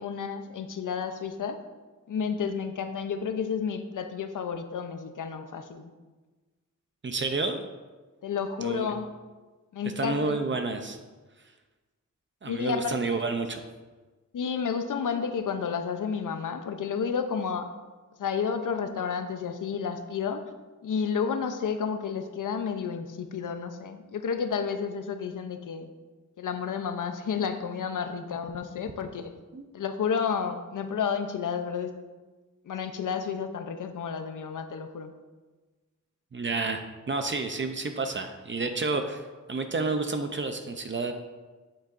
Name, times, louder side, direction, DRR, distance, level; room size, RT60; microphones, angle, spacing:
voice 1, 0.0-1.6 2.1-5.9 8.2-9.1 9.7-10.3 12.4-13.2 14.3-17.7 18.2-20.4 20.8-25.9 26.4-29.3 29.7-31.9 32.7-35.1, left 6 dB, 75° left, 8 dB, 0.7 m, -31 dB
voice 2, 7.0-7.6 8.6-8.9 10.0-11.0 12.4-13.6 29.5-29.6 36.3-39.2 39.5-41.1, right 3 dB, 40° right, 6 dB, 0.6 m, -30 dB
8.6 x 8.2 x 2.6 m, 1.3 s
wide cardioid pair, 135°, 31 cm